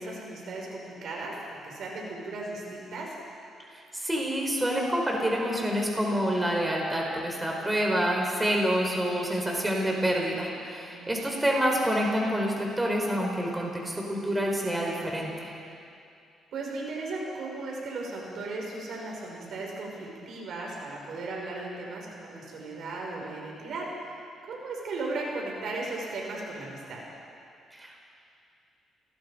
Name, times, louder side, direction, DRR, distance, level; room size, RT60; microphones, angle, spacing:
voice 1, 0.0-3.1 8.6-8.8 10.9-11.1 16.5-23.9 24.4-27.0, right 2 dB, 70° right, -2 dB, 6.1 m, -36 dB
voice 2, 3.9-15.5 27.7-28.1, equal, 10° right, -1 dB, 4.7 m, -27 dB
29.5 x 20.5 x 5.3 m, 2.5 s
cardioid pair, 90°, 0 cm